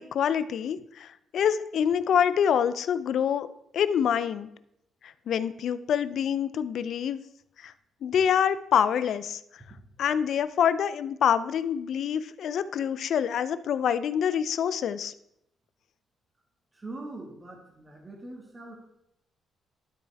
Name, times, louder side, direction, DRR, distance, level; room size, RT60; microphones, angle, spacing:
voice 1, 0.0-3.5 3.7-4.5 5.0-7.2 7.6-7.7 8.0-9.6 10.0-15.1, left 8 dB, 65° left, 14 dB, 0.4 m, -26 dB
voice 2, 16.7-18.7, right 2 dB, 25° right, 0 dB, 1.8 m, -42 dB
12.5 x 4.6 x 3.4 m, 0.79 s
cardioid pair, 90°, 0 cm